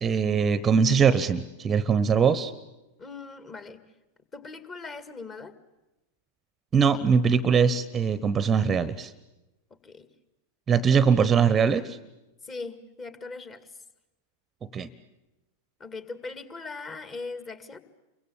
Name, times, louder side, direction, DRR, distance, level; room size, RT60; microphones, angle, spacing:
voice 1, 0.0-2.5 6.7-9.1 10.7-12.0 14.7-14.9, right 6 dB, 20° right, 17 dB, 1.0 m, -22 dB
voice 2, 3.0-3.8 4.3-5.5 9.7-10.1 12.4-13.7 15.8-17.8, left 3 dB, 25° left, 11 dB, 2.1 m, -40 dB
29.0 x 23.5 x 8.5 m, 1.0 s
figure-of-eight pair, 90°, 0 cm